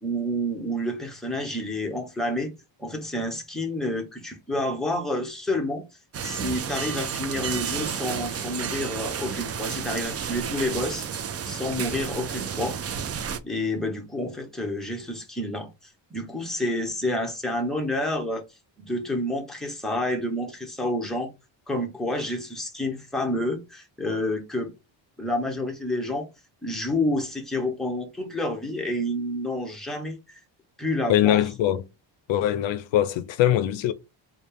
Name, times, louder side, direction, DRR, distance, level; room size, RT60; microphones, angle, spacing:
voice 1, 0.0-2.5 2.8-5.8 6.2-11.1 11.4-12.8 13.4-15.7 16.1-18.4 18.9-21.3 21.7-24.7 25.2-26.3 26.6-30.2 30.8-31.4, left 1 dB, ahead, 1.0 m, -29 dB
sound 1, 6.1-13.4, right 7 dB, 35° right, 0.4 m, -31 dB
voice 2, 31.1-31.9 32.3-33.9, left 12 dB, 70° left, 0.5 m, -22 dB
4.1 x 2.3 x 3.4 m
cardioid pair, 115°, 46 cm